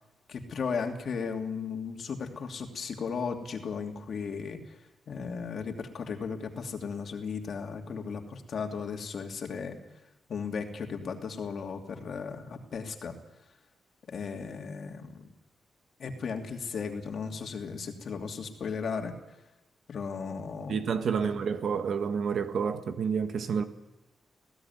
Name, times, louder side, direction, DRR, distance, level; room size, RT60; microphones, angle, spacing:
voice 1, 0.3-4.6 5.1-9.8 10.3-13.1 14.1-15.3 16.0-19.1 19.9-20.8 21.2-21.4, left 5 dB, 55° left, 2.8 m, -35 dB
voice 2, 20.7-23.6, right 6 dB, 70° right, 1.7 m, -29 dB
20.5 x 16.0 x 9.5 m
wide cardioid pair, 130°, 0 cm